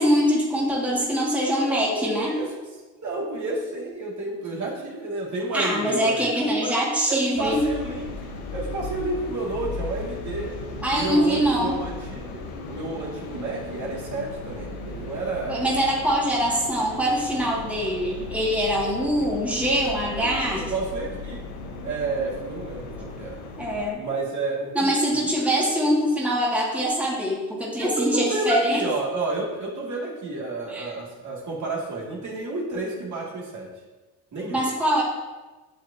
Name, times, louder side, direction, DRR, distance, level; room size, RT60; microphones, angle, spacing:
voice 1, 0.0-2.3 5.5-7.6 10.8-11.8 15.5-20.6 23.6-24.0 24.7-28.8 30.7-30.9 34.5-35.0, equal, 5° right, -4 dB, 2.0 m, -23 dB
voice 2, 1.6-2.5 3.0-6.3 6.6-6.7 7.1-8.1 8.5-10.6 10.9-15.7 19.2-19.3 19.7-21.4 21.8-23.4 24.0-25.0 27.8-33.7 34.3-34.6, right 2 dB, 45° right, -4 dB, 2.3 m, -30 dB
sound 1, 7.3-23.9, left 3 dB, 90° left, 1.1 m, -37 dB
8.3 x 6.4 x 2.8 m, 1.2 s
hypercardioid pair, 60°, 40 cm